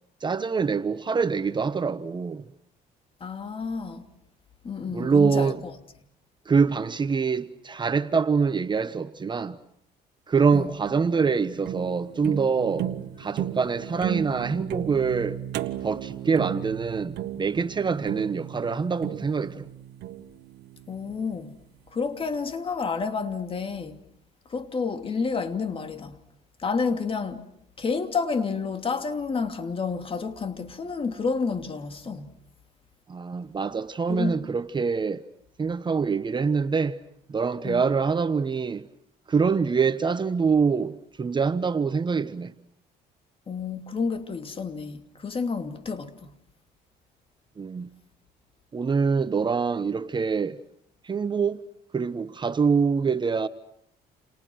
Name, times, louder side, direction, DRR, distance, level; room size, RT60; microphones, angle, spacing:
voice 1, 0.2-2.4 4.9-5.6 6.4-9.6 10.3-12.9 13.2-15.4 15.8-19.7 33.1-35.2 35.6-37.0 37.3-38.8 39.3-42.5 47.6-47.9 48.7-50.6 51.0-51.6 51.9-53.5, right 5 dB, 25° right, 1.1 m, -25 dB
voice 2, 3.2-4.0 4.6-5.5 10.5-10.7 20.9-21.6 21.9-24.0 24.5-26.2 26.6-27.4 27.8-32.4 34.1-34.3 37.6-37.8 43.5-46.3, left 5 dB, 35° left, 2.9 m, -30 dB
sound 1, 10.4-21.6, right 12 dB, 80° right, 1.6 m, -35 dB
30.0 x 29.0 x 6.4 m
cardioid pair, 110°, 17 cm